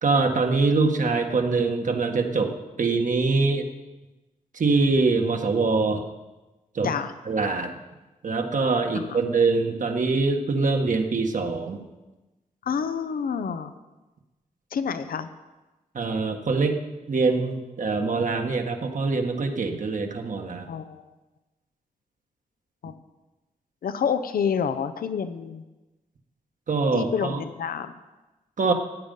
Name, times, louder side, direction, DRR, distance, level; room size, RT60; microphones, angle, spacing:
voice 1, 0.0-2.5 2.8-3.7 4.5-6.0 6.7-6.9 7.2-7.7 8.2-11.8 15.9-16.8 17.1-20.7 26.7-27.4 28.6-28.7, right 3 dB, 60° right, 4 dB, 1.6 m, -24 dB
voice 2, 12.7-13.7 14.7-15.3 20.7-21.0 22.8-22.9 23.8-25.6 26.9-27.9, left 7 dB, 85° left, 11 dB, 0.7 m, -28 dB
14.5 x 9.1 x 5.5 m, 1.1 s
cardioid pair, 70°, 15 cm